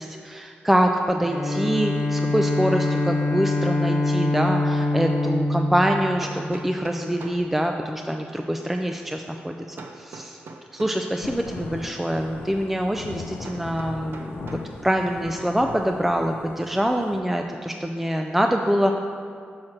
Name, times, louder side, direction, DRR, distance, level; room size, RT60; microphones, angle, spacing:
voice 1, 0.0-10.4 10.7-14.5 14.8-18.9, equal, 5° right, 3 dB, 0.3 m, -25 dB
Bowed string instrument, 1.1-6.8, left 2 dB, 10° left, 0.9 m, -24 dB
Hammer, 6.2-7.5 9.8-11.1 13.4-14.7, right 3 dB, 65° right, 0.6 m, -41 dB
Thunder / Rain, 11.2-17.2, left 4 dB, 80° left, 0.4 m, -39 dB
6.4 x 5.9 x 4.4 m, 2.2 s
wide cardioid pair, 105°, 4 cm